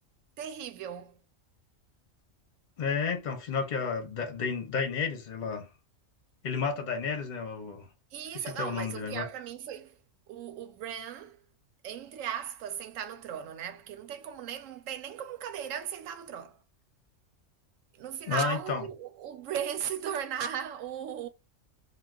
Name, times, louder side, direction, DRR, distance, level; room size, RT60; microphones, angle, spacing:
voice 1, 0.4-1.2 8.1-10.0 10.3-11.4 11.8-16.6 18.0-21.3, right 9 dB, 80° right, 1.0 m, -37 dB
voice 2, 2.8-5.7 6.4-7.9 8.3-9.3 18.3-18.9, left 5 dB, 45° left, 0.6 m, -32 dB
2.3 x 2.3 x 3.4 m
omnidirectional pair, 1.4 m